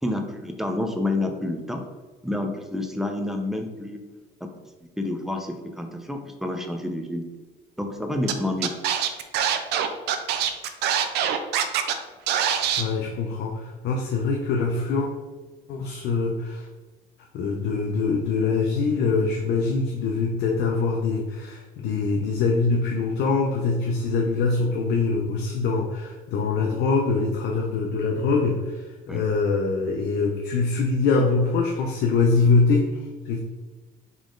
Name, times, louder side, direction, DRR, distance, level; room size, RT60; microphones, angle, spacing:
voice 1, 0.0-1.9 2.2-4.1 4.4-4.5 5.0-7.3 7.8-8.7 29.1-29.2, left 1 dB, ahead, 3 dB, 0.5 m, -29 dB
Scratching (performance technique), 8.3-8.4 8.6-11.9 12.3-12.8, right 9 dB, 80° right, 0.5 m, -23 dB
voice 2, 12.8-15.1 15.7-16.6 17.3-33.4, left 4 dB, 75° left, 1 dB, 0.6 m, -24 dB
4.1 x 3.2 x 3.6 m, 1.2 s
cardioid pair, 110°, 17 cm